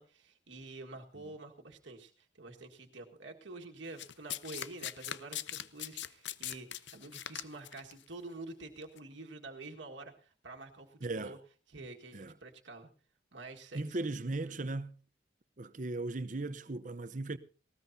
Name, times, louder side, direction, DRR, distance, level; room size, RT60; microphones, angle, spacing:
voice 1, 0.0-11.4 11.7-12.9 13.3-14.1 14.4-14.6, right 2 dB, 80° right, 1.7 m, -48 dB
Domestic sounds home sounds, 4.0-7.9 8.8-9.0, left 11 dB, 70° left, 0.7 m, -40 dB
voice 2, 11.0-11.3 12.1-12.3 13.7-15.0 15.6-17.4, right 2 dB, 45° right, 0.8 m, -37 dB
19.0 x 18.0 x 2.7 m
head